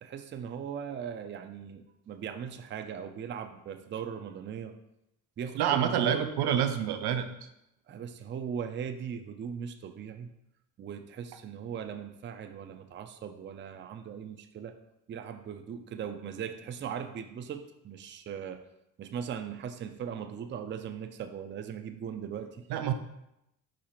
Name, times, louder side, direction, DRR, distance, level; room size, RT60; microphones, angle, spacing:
voice 1, 0.0-4.8 5.4-6.3 7.9-10.3 10.8-14.8 15.1-18.6 19.0-22.6, right 7 dB, 30° right, 8 dB, 0.4 m, -39 dB
voice 2, 5.6-7.3 22.7-22.9, right 9 dB, 80° right, 9 dB, 0.5 m, -27 dB
4.7 x 2.5 x 4.3 m, 0.85 s
cardioid pair, 85°, 39 cm